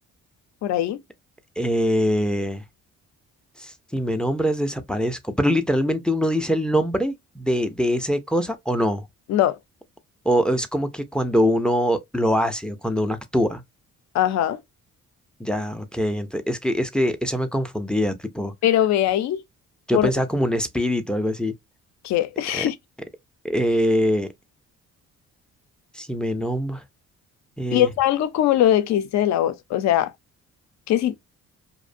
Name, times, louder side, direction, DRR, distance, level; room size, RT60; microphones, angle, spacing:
voice 1, 0.6-1.0 9.3-9.6 14.1-14.6 18.6-19.4 19.9-20.1 22.0-22.8 27.7-30.1 30.9-31.2, left 12 dB, 65° left, 0.4 m, -21 dB
voice 2, 1.6-2.6 3.6-9.1 10.3-13.6 15.4-18.5 19.9-21.5 22.5-22.6 23.4-24.3 25.9-26.8 27.6-27.9, equal, 5° left, 0.3 m, -23 dB
2.5 x 2.1 x 2.5 m
cardioid pair, 90°, 30 cm